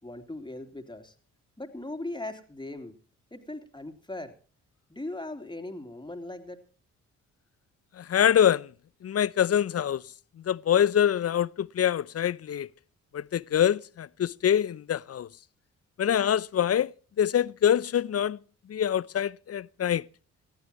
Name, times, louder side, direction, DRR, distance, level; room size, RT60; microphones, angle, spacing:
voice 1, 0.0-1.1 1.6-2.9 3.3-4.3 4.9-6.6, left 2 dB, 15° left, 3.4 m, -39 dB
voice 2, 8.0-8.7 9.0-10.0 10.5-12.7 13.1-15.3 16.0-16.9 17.2-18.4 18.7-20.0, left 9 dB, 45° left, 0.6 m, -25 dB
20.0 x 14.5 x 3.0 m
hypercardioid pair, 45°, 35 cm